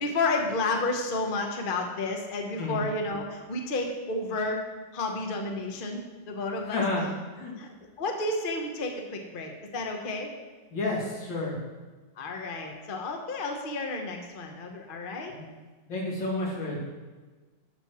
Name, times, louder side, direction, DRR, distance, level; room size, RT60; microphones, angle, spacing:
voice 1, 0.0-4.6 4.9-6.8 7.6-10.3 12.2-15.3, left 2 dB, 40° left, 3 dB, 0.8 m, -31 dB
voice 2, 6.7-7.0 7.3-7.5 10.7-11.6 15.3-15.5 15.9-16.8, left 2 dB, 70° left, -3 dB, 2.7 m, -30 dB
11.5 x 4.5 x 6.1 m, 1.3 s
omnidirectional pair, 2.2 m